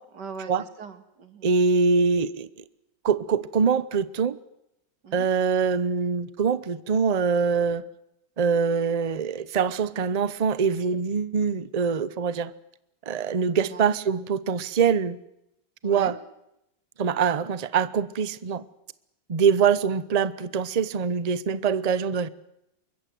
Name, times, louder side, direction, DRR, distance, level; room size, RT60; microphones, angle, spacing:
voice 1, 0.1-1.5 5.0-5.3 13.6-13.9 15.8-16.2, right 5 dB, 65° right, 2.6 m, -41 dB
voice 2, 1.4-2.5 3.0-4.4 5.1-7.9 8.4-12.5 13.1-15.2 15.8-16.2 17.0-18.6 19.3-22.3, right 6 dB, 35° right, 0.6 m, -24 dB
24.5 x 22.0 x 7.8 m
omnidirectional pair, 2.0 m